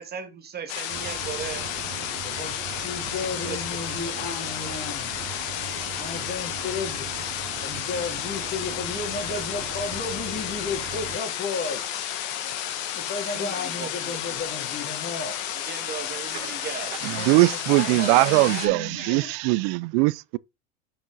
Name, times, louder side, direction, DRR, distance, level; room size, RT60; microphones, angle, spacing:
voice 1, 0.0-1.6 3.1-3.6 4.0-4.1 4.4-4.7 13.2-14.4 15.5-17.0, right 7 dB, 30° right, 1.8 m, -38 dB
sound 1, 0.7-18.7, left 10 dB, 65° left, 1.8 m, -32 dB
sound 2, 0.9-11.2, right 11 dB, 45° right, 1.2 m, -40 dB
voice 2, 2.2-5.1 6.0-7.1 7.6-11.9 12.9-15.4 17.1-19.4, left 4 dB, 35° left, 3.1 m, -34 dB
voice 3, 17.0-20.4, right 22 dB, 60° right, 0.5 m, -21 dB
6.5 x 6.1 x 3.9 m
supercardioid pair, 120°, 33 cm